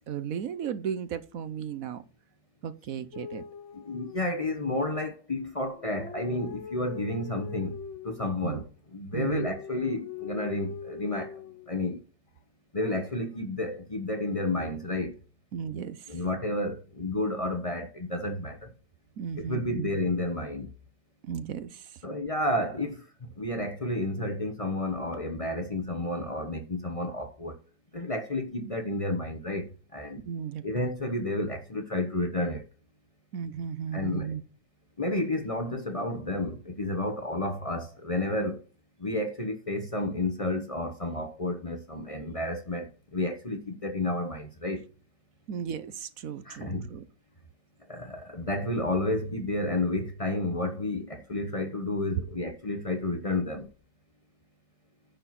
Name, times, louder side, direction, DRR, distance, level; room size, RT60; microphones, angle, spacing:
voice 1, 0.1-2.0 2.6-3.4 8.4-8.6 9.1-9.5 15.5-16.2 19.2-19.9 21.2-22.0 30.2-30.6 33.3-34.4 45.5-47.0, right 8 dB, 65° right, 1.2 m, -35 dB
sound 1, 3.1-4.8 5.6-8.3 9.1-11.7 12.8-13.4, left 7 dB, 55° left, 1.0 m, -42 dB
voice 2, 3.7-12.0 12.7-15.2 16.1-18.7 19.4-20.7 22.0-27.6 27.9-30.2 30.6-32.6 33.9-34.3 35.0-38.6 39.0-44.8 46.4-46.9 47.9-53.7, left 1 dB, 25° left, 1.0 m, -31 dB
10.0 x 4.7 x 5.8 m
omnidirectional pair, 1.6 m